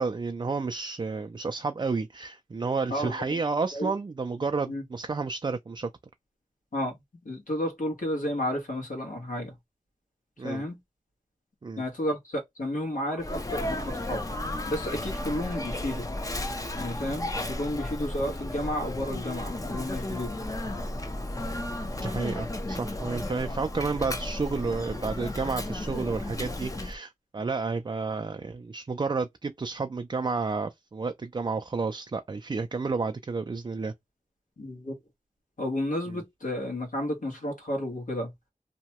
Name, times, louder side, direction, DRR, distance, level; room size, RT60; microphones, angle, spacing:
voice 1, 0.0-5.9 10.4-10.6 11.6-11.8 17.4-17.5 21.5-21.7 22.0-33.9 36.1-36.2, right 4 dB, 35° right, 0.3 m, -31 dB
voice 2, 2.9-3.4 3.7-3.9 4.7-4.8 6.7-7.0 7.2-9.5 10.4-10.8 11.8-14.2 14.7-16.1 16.8-20.3 34.6-34.9 35.6-38.3, left 1 dB, 70° left, 1.2 m, -32 dB
Sneeze, 13.2-27.0, left 1 dB, 25° left, 0.5 m, -34 dB
2.8 x 2.2 x 2.8 m
wide cardioid pair, 70°, 14 cm